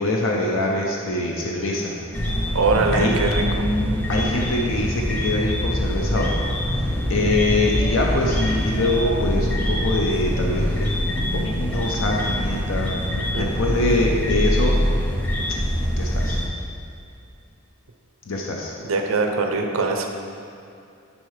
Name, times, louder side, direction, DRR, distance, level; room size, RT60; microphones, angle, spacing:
voice 1, 0.0-2.0 2.9-3.1 4.1-6.4 6.8-10.9 11.3-12.9 13.4-14.8 16.0-16.4 18.3-18.7, left 2 dB, 65° left, -1 dB, 0.6 m, -24 dB
sound 1, 2.1-16.5, equal, 10° left, 0.6 m, -24 dB
voice 2, 2.5-3.7 13.3-13.5 18.8-20.1, right 3 dB, 70° right, 3 dB, 0.6 m, -22 dB
10.0 x 4.2 x 3.3 m, 2.6 s
head